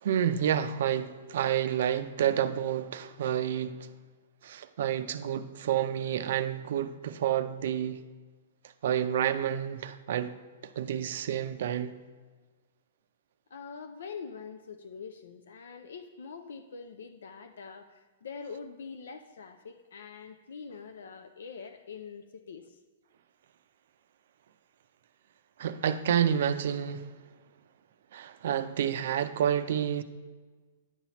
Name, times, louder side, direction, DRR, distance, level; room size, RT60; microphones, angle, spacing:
voice 1, 0.0-3.9 4.4-8.0 8.8-10.3 10.8-11.9 25.6-27.1 28.1-30.0, right 9 dB, 65° right, 0.4 m, -29 dB
voice 2, 13.5-22.8, left 5 dB, 80° left, 0.4 m, -44 dB
9.7 x 5.6 x 3.0 m
hypercardioid pair, 140°, 0 cm